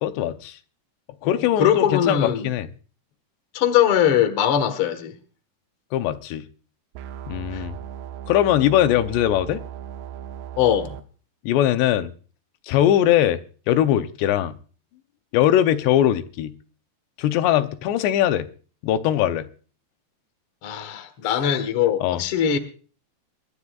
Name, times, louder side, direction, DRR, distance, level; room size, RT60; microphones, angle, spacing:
voice 1, 0.0-0.6 1.2-2.7 5.9-6.5 7.3-7.8 8.3-9.6 11.4-12.1 12.7-13.4 13.7-14.6 15.3-16.5 17.2-18.5 18.8-19.5 21.4-21.6 22.0-22.2, left 11 dB, 85° left, 2.9 m, -21 dB
voice 2, 1.2-2.5 3.5-5.1 7.5-7.6 10.6-11.0 20.6-22.6, left 9 dB, 65° left, 1.4 m, -21 dB
sound 1, 6.9-11.0, right 9 dB, 75° right, 2.7 m, -37 dB
27.0 x 12.0 x 2.4 m
omnidirectional pair, 4.9 m